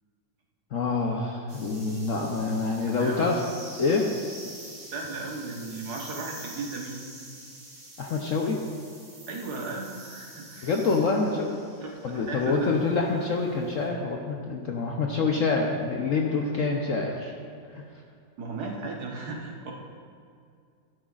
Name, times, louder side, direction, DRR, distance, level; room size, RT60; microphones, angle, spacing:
voice 1, 0.7-3.4 3.8-4.1 8.0-8.6 10.6-11.6 12.0-17.3 17.7-17.8, left 4 dB, 60° left, 0 dB, 0.9 m, -26 dB
sound 1, 1.5-13.9, right 1 dB, 85° right, 3.7 m, -46 dB
voice 2, 3.0-3.3 4.9-7.0 9.3-10.7 11.8-13.1 18.4-19.7, right 3 dB, 60° right, 0 dB, 1.6 m, -36 dB
12.5 x 11.5 x 2.4 m, 2.3 s
omnidirectional pair, 2.0 m